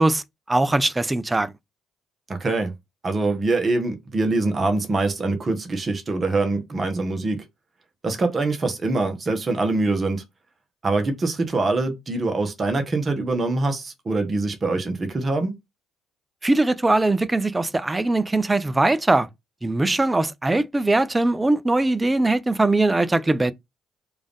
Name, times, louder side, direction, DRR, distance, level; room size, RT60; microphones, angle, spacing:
voice 1, 0.0-1.5 16.4-19.3 19.6-23.5, right 2 dB, 20° right, 0.4 m, -21 dB
voice 2, 2.3-2.7 3.0-7.4 8.0-10.2 10.8-15.6, right 3 dB, 35° right, 1.1 m, -24 dB
3.4 x 2.5 x 3.5 m
hypercardioid pair, 50°, 0 cm